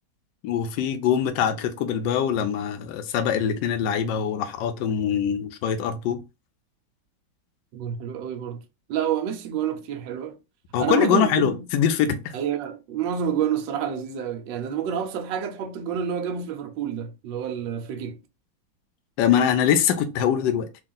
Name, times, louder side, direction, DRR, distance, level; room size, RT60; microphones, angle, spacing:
voice 1, 0.4-6.2 10.7-12.3 19.2-20.7, left 8 dB, 70° left, 1.2 m, -23 dB
voice 2, 7.7-8.6 8.9-10.4 10.8-11.7 12.3-18.2, right 8 dB, 75° right, 1.3 m, -28 dB
3.6 x 2.5 x 3.7 m
omnidirectional pair, 2.1 m